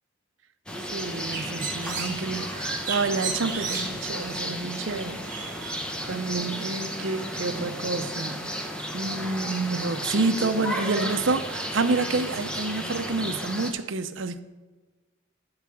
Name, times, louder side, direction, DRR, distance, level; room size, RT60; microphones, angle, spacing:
sound 1, 0.7-13.7, equal, 5° left, 0.9 m, -33 dB
Bird, 0.9-6.3, right 5 dB, 40° right, 1.6 m, -36 dB
voice 1, 0.9-5.5 6.1-8.7 8.9-14.4, right 3 dB, 70° right, 0.7 m, -29 dB
12.5 x 4.8 x 7.1 m
head